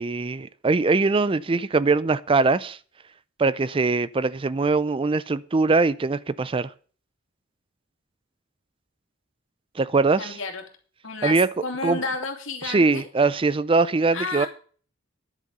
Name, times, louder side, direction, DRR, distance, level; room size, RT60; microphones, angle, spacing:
voice 1, 0.0-2.8 3.4-6.7 9.8-10.4 11.2-11.5 11.8-12.0 12.6-14.5, right 3 dB, 25° right, 0.4 m, -22 dB
voice 2, 10.2-10.6 11.0-13.1 14.1-14.5, left 4 dB, 80° left, 2.8 m, -31 dB
10.5 x 7.8 x 6.7 m
head